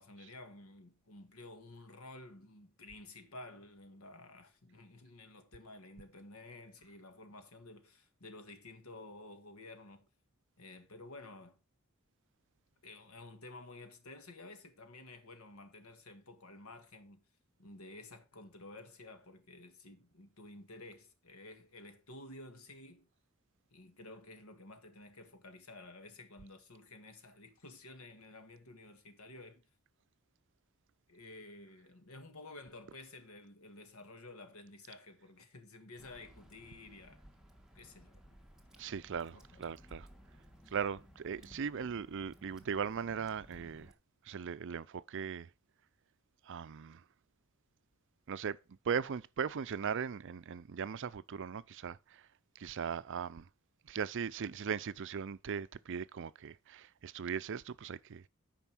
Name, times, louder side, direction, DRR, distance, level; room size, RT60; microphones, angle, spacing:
voice 1, 0.0-10.1 10.6-11.6 12.8-17.3 17.6-23.1 23.7-29.6 31.1-37.2 37.8-38.4 39.3-39.6 41.4-41.6, left 2 dB, 90° left, 1.7 m, -52 dB
Water / Drip, 36.0-43.9, equal, ahead, 1.4 m, -58 dB
voice 2, 38.8-40.1 40.7-43.9 44.3-45.5 46.5-47.0 48.3-48.6 48.9-52.0 52.6-53.4 53.9-58.2, right 6 dB, 60° right, 0.5 m, -38 dB
9.0 x 5.1 x 6.1 m
head